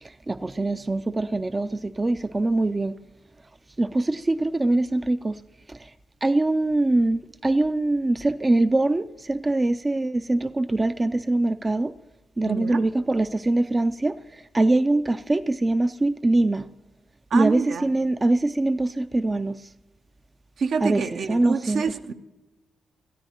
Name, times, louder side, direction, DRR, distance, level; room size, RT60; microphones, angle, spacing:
voice 1, 0.0-2.9 3.8-5.4 5.7-5.9 6.2-12.0 12.4-16.7 17.3-19.7 20.8-21.8, right 2 dB, 25° right, 0.4 m, -23 dB
voice 2, 12.5-12.8 17.3-17.9 20.6-22.1, right 5 dB, 65° right, 0.7 m, -27 dB
19.5 x 13.5 x 2.9 m
cardioid pair, 75°, 0 cm